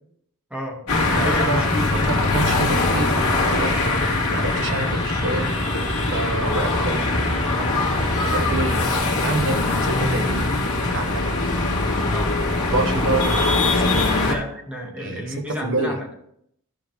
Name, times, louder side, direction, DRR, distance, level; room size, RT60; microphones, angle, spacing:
voice 1, 0.5-2.2 6.4-6.6 8.7-8.9 12.1-12.4 14.2-16.1, left 1 dB, 5° right, 0 dB, 1.9 m, -31 dB
sound 1, 0.9-14.3, left 2 dB, 75° left, 2.2 m, -22 dB
voice 2, 1.2-1.6 1.9-3.7 4.3-5.5 6.1-7.7 8.3-8.9 9.2-10.5 10.9-11.4 12.7-14.1 15.0-16.0, right 2 dB, 65° right, 6 dB, 1.2 m, -28 dB
14.5 x 5.6 x 3.3 m, 0.70 s
head